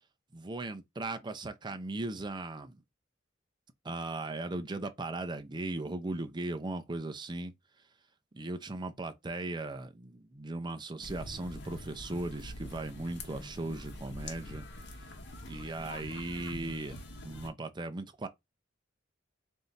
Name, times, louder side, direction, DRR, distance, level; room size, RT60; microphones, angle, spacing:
voice 1, 0.3-2.8 3.8-7.5 8.3-14.6 15.5-18.3, right 2 dB, 25° right, 0.5 m, -38 dB
sound 1, 11.0-17.5, left 1 dB, 65° left, 1.0 m, -45 dB
3.6 x 2.7 x 4.0 m
head